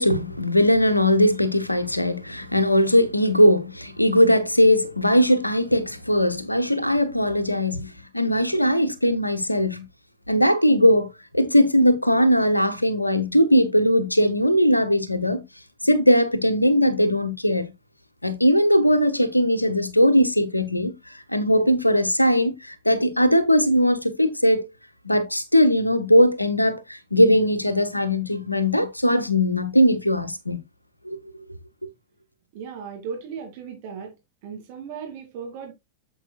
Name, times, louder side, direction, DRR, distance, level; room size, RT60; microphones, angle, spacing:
voice 1, 0.0-9.9 10.3-11.1 11.3-15.4 15.8-17.7 18.2-20.9 21.3-24.6 25.0-30.6 31.1-31.2, equal, 85° left, 1.0 m, -19 dB
voice 2, 32.5-34.1 34.4-35.7, right 6 dB, 50° right, 2.3 m, -36 dB
9.1 x 7.3 x 2.3 m
figure-of-eight pair, 90°, 0 cm